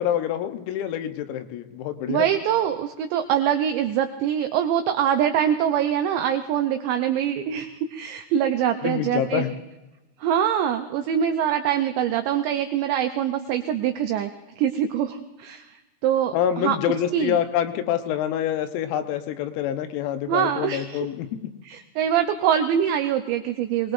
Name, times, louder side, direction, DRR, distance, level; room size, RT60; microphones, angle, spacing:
voice 1, 0.0-2.3 8.8-9.5 16.3-21.3, left 10 dB, 90° left, 8 dB, 3.7 m, -26 dB
voice 2, 2.1-9.4 10.2-14.3 14.6-15.8 16.0-16.8 17.1-17.4 20.3-21.1 21.6-23.9, right 9 dB, 85° right, 7 dB, 2.5 m, -24 dB
24.5 x 20.0 x 2.6 m, 1.1 s
omnidirectional pair, 6.0 m